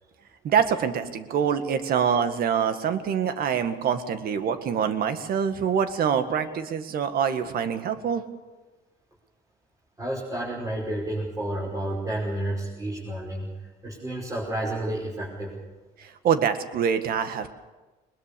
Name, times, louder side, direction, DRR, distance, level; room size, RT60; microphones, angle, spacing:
voice 1, 0.4-8.2 16.0-17.5, right 7 dB, 60° right, 10 dB, 1.8 m, -25 dB
voice 2, 10.0-13.5 13.8-15.6, right 1 dB, 20° right, -5 dB, 5.5 m, -30 dB
21.0 x 21.0 x 7.0 m, 1.2 s
cardioid pair, 110°, 17 cm